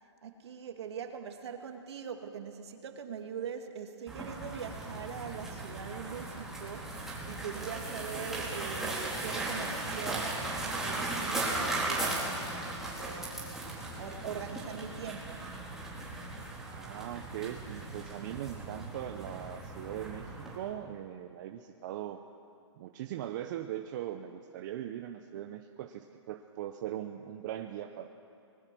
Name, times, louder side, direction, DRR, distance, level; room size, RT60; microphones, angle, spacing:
voice 1, 0.2-10.4 10.6-13.7 14.0-15.5, right 7 dB, 65° right, 5 dB, 2.4 m, -42 dB
sound 1, 4.1-20.6, right 2 dB, 5° right, 4.1 m, -37 dB
voice 2, 16.6-22.2 22.8-28.1, right 11 dB, 40° right, 6 dB, 0.9 m, -40 dB
25.0 x 20.5 x 6.2 m, 2.6 s
hypercardioid pair, 145°, 15 cm